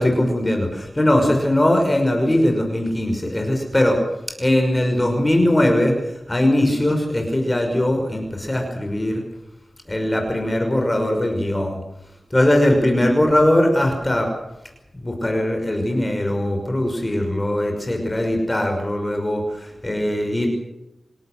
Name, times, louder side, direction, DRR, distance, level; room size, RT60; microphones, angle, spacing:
voice 1, 0.0-4.0 4.4-9.2 9.9-11.8 12.3-14.3 14.9-20.5, left 1 dB, 20° left, 3 dB, 5.7 m, -20 dB
28.5 x 17.5 x 6.6 m, 0.91 s
wide cardioid pair, 100°, 0 cm